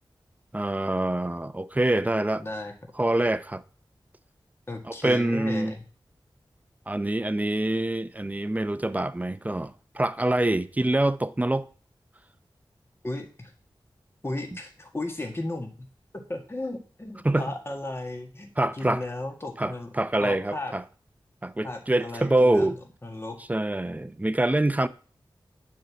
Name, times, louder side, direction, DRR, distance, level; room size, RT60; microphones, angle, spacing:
voice 1, 0.5-2.4 3.0-3.6 4.9-5.7 6.9-11.7 17.2-17.5 18.6-19.0 19.6-20.8 21.4-22.8 23.5-24.9, right 1 dB, 15° right, 0.6 m, -25 dB
voice 2, 2.4-2.9 4.7-5.8 13.0-13.5 14.2-15.7 16.1-19.9 20.2-20.7 21.6-22.7 23.0-23.4, left 2 dB, 30° left, 1.7 m, -35 dB
9.2 x 4.7 x 6.9 m
wide cardioid pair, 70°, 9 cm